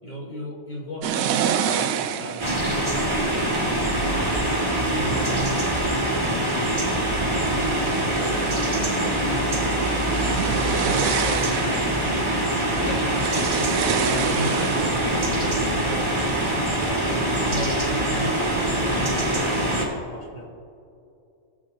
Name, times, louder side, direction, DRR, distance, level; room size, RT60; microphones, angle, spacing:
voice 1, 0.0-2.9 4.7-7.1 8.0-9.4 10.4-12.6 13.8-15.1 16.6-20.4, right 1 dB, 35° left, -4 dB, 2.3 m, -36 dB
sound 1, 1.0-5.8 6.4-6.9 7.3-16.6, right 8 dB, 85° right, 1.0 m, -30 dB
sound 2, 2.4-19.8, right 1 dB, 20° right, 2.0 m, -24 dB
voice 2, 3.5-3.8 6.5-6.9 12.7-14.6 14.9-16.6, left 4 dB, 90° left, 3 dB, 1.4 m, -37 dB
18.0 x 7.6 x 2.8 m, 2.5 s
omnidirectional pair, 1.4 m